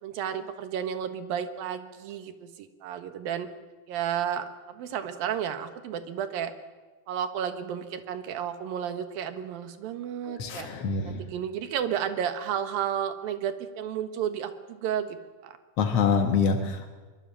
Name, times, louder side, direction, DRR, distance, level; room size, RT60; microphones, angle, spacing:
voice 1, 0.0-3.5 3.9-6.5 7.1-10.7 11.0-15.2 15.4-15.6, right 9 dB, 65° right, 9 dB, 2.8 m, -32 dB
voice 2, 10.3-11.2 15.8-16.9, left 5 dB, 70° left, 5 dB, 1.4 m, -25 dB
24.0 x 22.5 x 7.5 m, 1.3 s
omnidirectional pair, 5.2 m